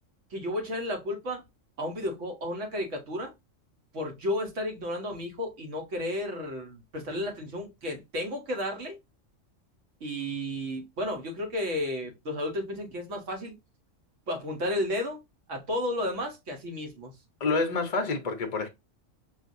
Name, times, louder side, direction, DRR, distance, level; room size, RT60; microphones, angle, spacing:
voice 1, 0.3-1.4 1.8-3.3 3.9-9.0 10.0-13.6 14.3-15.2 15.5-17.1, left 1 dB, 70° right, 1.4 m, -32 dB
voice 2, 17.4-18.7, left 3 dB, 45° left, 0.5 m, -28 dB
5.7 x 2.7 x 2.5 m
omnidirectional pair, 1.3 m